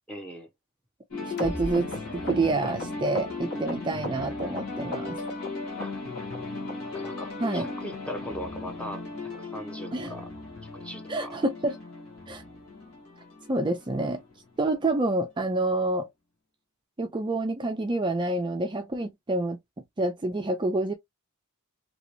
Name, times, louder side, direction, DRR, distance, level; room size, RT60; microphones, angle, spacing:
voice 1, 0.1-0.5 5.8-6.0 6.9-10.3 10.7-11.3, equal, 5° left, 0.8 m, -39 dB
sound 1, 1.1-14.8, left 3 dB, 70° left, 1.4 m, -37 dB
long dubby stab, 1.4-4.6 4.9-5.5 5.8-6.4 6.7-6.8 7.0-7.3 7.6-7.7 7.9-8.1 8.4-8.5 8.8-9.0 9.3-9.4 9.7-9.9 10.2-10.3 10.6-10.8 11.1-11.2, left 1 dB, 50° left, 1.4 m, -37 dB
voice 2, 1.4-1.9 2.1-5.2 7.4-7.7 9.9-10.2 11.1-11.8 12.3-12.4 13.5-14.2 14.6-16.1 17.0-19.6 20.0-20.9, right 2 dB, 20° right, 0.4 m, -27 dB
2.9 x 2.9 x 2.7 m
head